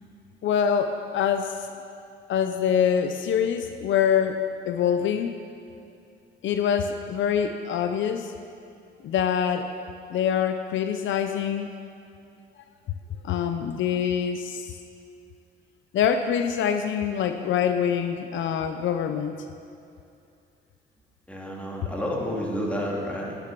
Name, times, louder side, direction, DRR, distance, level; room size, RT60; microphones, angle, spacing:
voice 1, 0.4-1.6 2.3-4.4 4.7-5.4 6.4-8.3 9.0-9.7 10.1-11.7 13.2-14.7 15.9-19.4, left 8 dB, 75° left, 8 dB, 0.7 m, -25 dB
voice 2, 21.3-23.4, equal, 5° left, -3 dB, 2.7 m, -30 dB
10.5 x 10.5 x 6.1 m, 2.5 s
cardioid pair, 90°, 20 cm